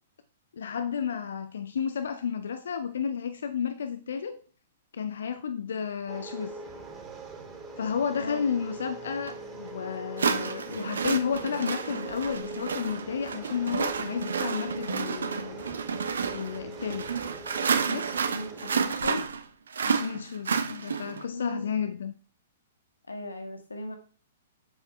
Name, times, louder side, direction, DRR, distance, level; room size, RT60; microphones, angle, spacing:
voice 1, 0.5-4.4 4.9-6.5 7.8-15.6 16.3-17.1 17.9-18.1 19.8-22.1, left 7 dB, 60° left, 0.7 m, -32 dB
sound 1, 6.1-18.9, right 3 dB, 15° right, 2.8 m, -42 dB
sound 2, 9.3-9.4 10.2-21.2, right 6 dB, 65° right, 1.0 m, -30 dB
voice 2, 18.3-19.2 21.3-21.8 23.1-24.0, left 2 dB, 80° left, 1.7 m, -36 dB
8.0 x 7.7 x 3.3 m
figure-of-eight pair, 115°, 0 cm